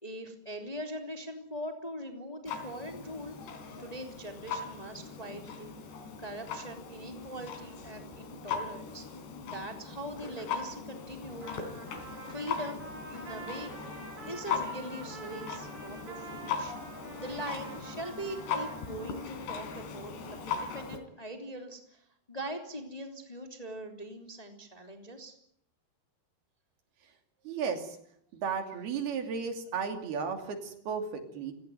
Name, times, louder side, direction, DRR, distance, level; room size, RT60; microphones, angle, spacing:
voice 1, 0.0-3.3 3.8-5.7 6.2-9.1 9.4-11.6 12.3-13.8 14.3-16.7 17.2-25.3, right 1 dB, 10° left, 4 dB, 2.7 m, -42 dB
Clock, 2.5-21.0, left 6 dB, 80° left, 5.6 m, -39 dB
Trumpet, 11.4-19.3, right 4 dB, 35° right, 4.5 m, -47 dB
voice 2, 27.4-28.0 28.3-31.5, right 6 dB, 65° right, 6 dB, 4.7 m, -34 dB
29.0 x 17.5 x 9.4 m, 0.69 s
omnidirectional pair, 4.8 m